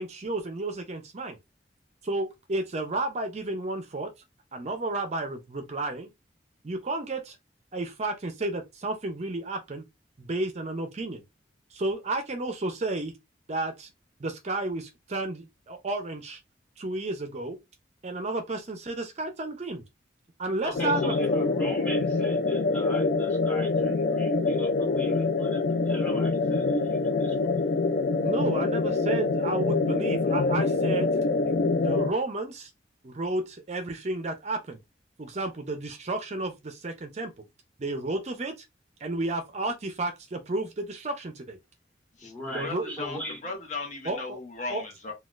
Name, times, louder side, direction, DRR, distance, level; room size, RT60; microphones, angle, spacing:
voice 1, 0.0-1.4 2.0-4.1 4.5-6.1 6.6-7.4 7.7-9.8 10.2-11.2 11.7-13.1 13.5-13.9 14.2-16.4 16.8-17.6 18.0-19.8 20.4-21.1 28.2-31.1 31.8-32.7 33.0-34.8 35.2-37.4 37.8-38.5 39.0-41.6 42.5-43.0 44.0-44.4 44.7-44.8, right 2 dB, 40° right, 0.5 m, -32 dB
voice 2, 20.6-27.5 42.2-43.5, left 1 dB, 10° left, 1.6 m, -39 dB
sound 1, 20.7-32.1, left 3 dB, 60° left, 0.4 m, -25 dB
voice 3, 42.6-45.1, left 3 dB, 45° left, 0.8 m, -37 dB
3.9 x 2.3 x 2.4 m
head